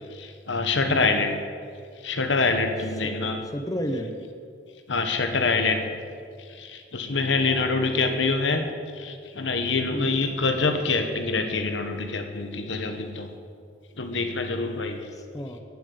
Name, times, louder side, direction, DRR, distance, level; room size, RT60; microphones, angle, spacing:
voice 1, 0.1-1.4 2.0-3.4 4.9-5.9 6.6-8.6 8.9-13.3 14.0-15.0, left 3 dB, 75° left, 6 dB, 1.3 m, -25 dB
voice 2, 3.0-4.1 9.9-10.1 15.2-15.6, equal, 20° left, 5 dB, 0.8 m, -32 dB
10.0 x 10.0 x 8.5 m, 2.2 s
head